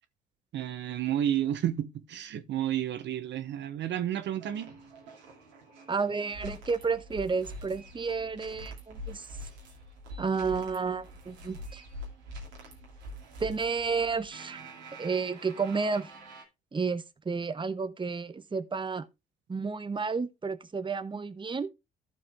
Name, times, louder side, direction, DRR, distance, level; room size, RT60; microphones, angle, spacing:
voice 1, 0.5-4.7, right 11 dB, 60° right, 1.0 m, -31 dB
sound 1, 4.4-16.4, equal, 85° right, 2.7 m, -45 dB
voice 2, 5.9-9.3 10.2-11.8 13.4-14.6 15.0-16.1 16.7-19.1 19.5-21.7, right 5 dB, 25° right, 1.0 m, -31 dB
14.0 x 4.8 x 3.6 m
hypercardioid pair, 50°, 21 cm